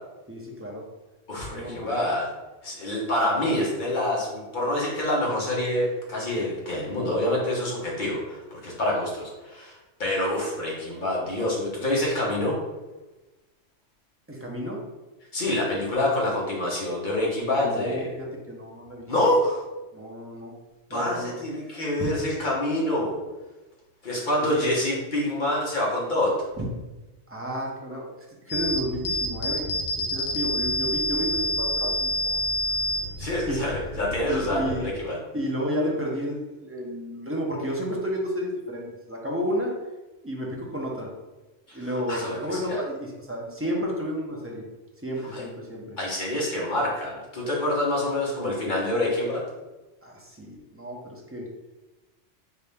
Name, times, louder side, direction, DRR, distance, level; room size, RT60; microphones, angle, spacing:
voice 1, 0.3-0.8 1.5-1.9 14.3-14.8 17.5-19.1 19.9-20.5 20.9-21.4 22.0-22.1 24.4-24.8 26.6-26.7 27.3-28.1 28.4-29.6 30.1-32.1 33.2-33.6 34.3-34.9 35.3-39.8 40.2-41.1 41.7-44.6 45.0-46.0 50.0-51.5, equal, 15° right, -2 dB, 0.4 m, -31 dB
voice 2, 1.3-2.3 2.6-12.6 15.3-18.1 19.1-19.6 20.9-23.2 24.0-26.3 33.2-35.2 41.7-41.8 42.1-42.8 45.3-45.4 46.0-49.4, left 1 dB, 40° left, -4 dB, 1.2 m, -26 dB
sound 1, 28.5-34.9, left 1 dB, 85° left, 1.1 m, -28 dB
4.4 x 2.9 x 3.4 m, 1.1 s
omnidirectional pair, 1.3 m